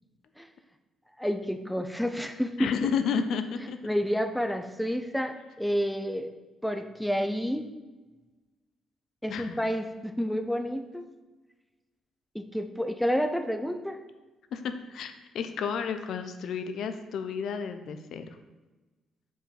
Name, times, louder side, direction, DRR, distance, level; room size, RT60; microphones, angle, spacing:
voice 1, 1.2-2.9 3.8-6.3 6.6-7.6 9.2-11.1 12.3-14.0, equal, 5° left, 8 dB, 0.5 m, -29 dB
voice 2, 2.6-3.8 9.3-9.6 14.5-18.4, left 6 dB, 70° left, 8 dB, 0.5 m, -31 dB
5.4 x 4.7 x 4.5 m, 1.2 s
cardioid pair, 90°, 0 cm